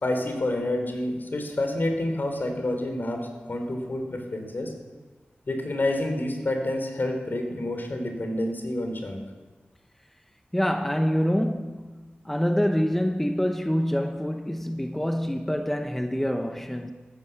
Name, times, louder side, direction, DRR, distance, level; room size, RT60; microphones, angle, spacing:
voice 1, 0.0-4.7 5.5-9.2, left 1 dB, 55° left, 3.4 m, -28 dB
voice 2, 10.5-16.9, equal, 5° left, 0.9 m, -26 dB
15.0 x 13.5 x 7.1 m
wide cardioid pair, 65°, 4 cm